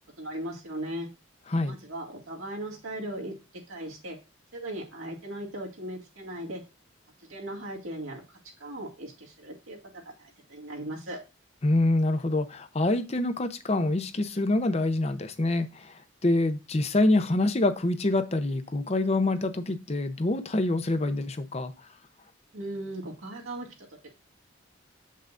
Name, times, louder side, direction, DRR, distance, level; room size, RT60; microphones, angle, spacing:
voice 1, 0.2-1.1 1.7-3.4 3.7-4.2 4.5-6.6 7.2-9.8 10.2-11.2 22.5-23.7 24.0-24.1, right 1 dB, 90° right, 2.0 m, -38 dB
voice 2, 11.6-15.9 16.2-21.7, left 2 dB, 30° left, 0.6 m, -26 dB
7.7 x 5.6 x 2.5 m
head